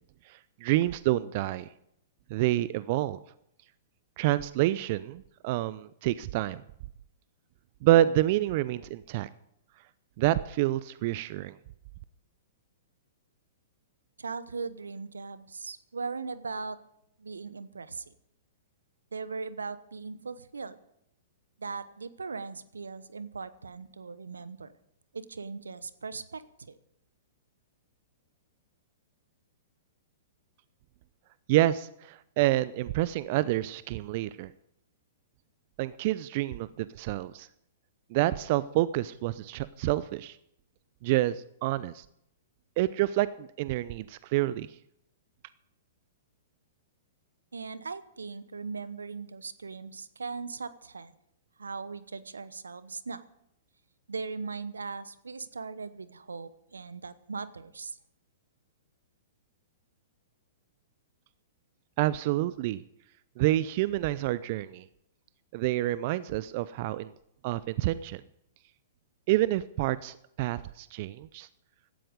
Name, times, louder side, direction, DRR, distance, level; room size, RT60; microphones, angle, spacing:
voice 1, 0.3-1.7 2.3-3.2 4.2-6.6 7.8-9.3 10.2-11.6 31.5-34.5 35.8-37.5 38.1-40.4 41.0-42.0 42.8-44.7 62.0-62.8 63.4-64.8 65.5-67.1 67.4-68.2 69.3-71.5, right 15 dB, 50° right, 17 dB, 0.5 m, -28 dB
voice 2, 14.2-16.8 17.2-18.1 19.1-20.8 21.6-24.7 25.1-26.8 47.5-51.1 51.6-53.2 54.1-58.0, right 4 dB, 85° right, 15 dB, 1.0 m, -39 dB
16.5 x 12.5 x 5.2 m, 0.77 s
hypercardioid pair, 115°, 0 cm